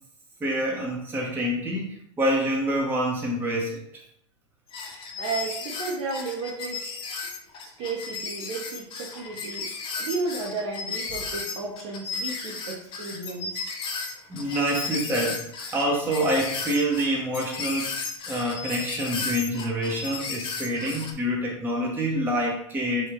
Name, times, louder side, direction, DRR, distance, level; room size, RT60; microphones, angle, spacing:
voice 1, 0.4-3.7 14.3-15.4 15.7-17.9 18.3-23.1, equal, 15° right, -2 dB, 0.8 m, -26 dB
sound 1, 4.7-21.1, left 4 dB, 30° left, 0.5 m, -34 dB
voice 2, 5.2-6.9 7.8-9.7 10.0-13.7, right 4 dB, 55° right, -3 dB, 0.7 m, -33 dB
3.5 x 2.2 x 2.9 m, 0.71 s
hypercardioid pair, 100°, 16 cm